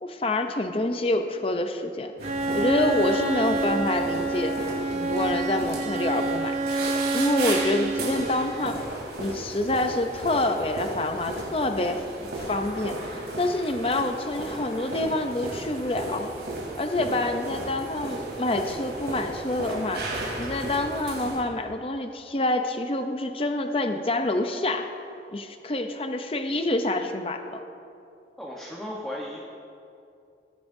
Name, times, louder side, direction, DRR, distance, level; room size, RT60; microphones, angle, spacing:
voice 1, 0.0-2.1 2.5-4.6 4.9-6.8 7.1-8.8 9.2-16.3 16.8-20.1 20.4-24.9 25.3-27.6, left 2 dB, 30° left, 6 dB, 0.6 m, -27 dB
Bowed string instrument, 2.2-8.9, right 2 dB, 40° right, 1.0 m, -28 dB
sound 1, 2.2-21.4, right 2 dB, 85° right, 3.3 m, -35 dB
voice 2, 17.1-17.4 28.4-29.4, left 1 dB, 5° left, -5 dB, 1.1 m, -36 dB
19.5 x 11.0 x 2.7 m, 2.6 s
head